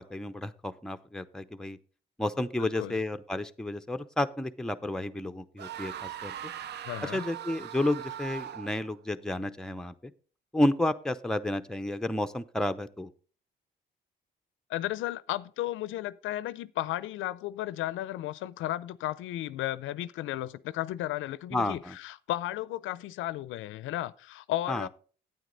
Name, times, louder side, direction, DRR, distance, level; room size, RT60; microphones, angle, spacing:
voice 1, 0.0-1.8 2.2-6.3 7.0-10.1 10.5-13.1 21.5-22.0 24.7-24.9, left 1 dB, 5° left, 0.6 m, -31 dB
voice 2, 2.6-3.0 6.9-7.3 14.7-24.9, left 14 dB, 85° left, 0.5 m, -34 dB
sound 1, 5.6-8.9, right 10 dB, 60° right, 0.5 m, -40 dB
9.2 x 9.0 x 3.9 m
cardioid pair, 90°, 20 cm